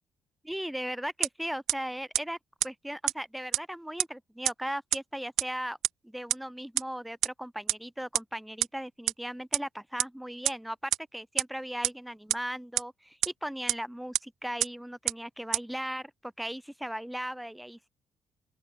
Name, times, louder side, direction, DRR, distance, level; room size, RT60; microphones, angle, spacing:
voice 1, 0.4-2.4 2.6-5.8 6.0-17.9, equal, 5° right, 4.8 m, -37 dB
sound 1, 1.2-1.3 1.7-1.8 2.1-2.2 2.6-2.7 3.1-3.2 3.5-3.6 4.0-4.1 4.5-4.6 4.9-5.0 5.4-5.5 5.8-5.9 6.3-6.4 6.8-6.9 7.2-7.3 7.7-7.8 8.1-8.2 8.6-8.7 9.1-9.2 9.5-9.6 10.0-10.1 10.5-10.6 10.9-11.0 11.4-11.5 11.8-11.9 12.3-12.4 12.8-12.9 13.2-13.3 13.7-13.8 14.1-14.2 14.6-14.7 15.1-15.2 15.5-15.6, right 13 dB, 85° right, 1.0 m, -25 dB
open air
cardioid pair, 90°, 0 cm